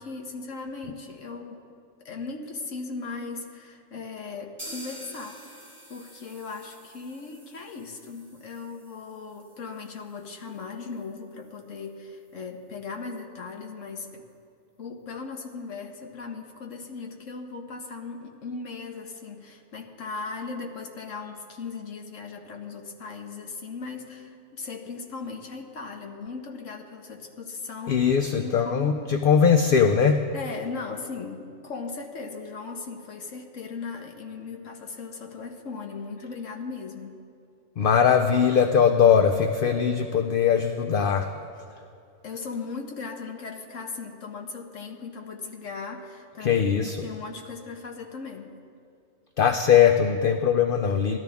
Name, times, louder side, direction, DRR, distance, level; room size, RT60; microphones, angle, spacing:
voice 1, 0.0-1.6 2.0-5.6 5.9-14.3 14.8-29.0 30.3-37.2 42.2-48.5, left 4 dB, 80° left, 3 dB, 1.5 m, -38 dB
sound 1, 4.6-12.3 12.6-12.7 13.0-13.1 13.5-13.6, equal, 10° right, 1.8 m, -48 dB
voice 2, 27.9-30.2 37.8-41.3 46.4-47.0 49.4-51.2, left 7 dB, 55° left, 6 dB, 0.6 m, -20 dB
19.0 x 12.5 x 3.5 m, 2.5 s
omnidirectional pair, 1.3 m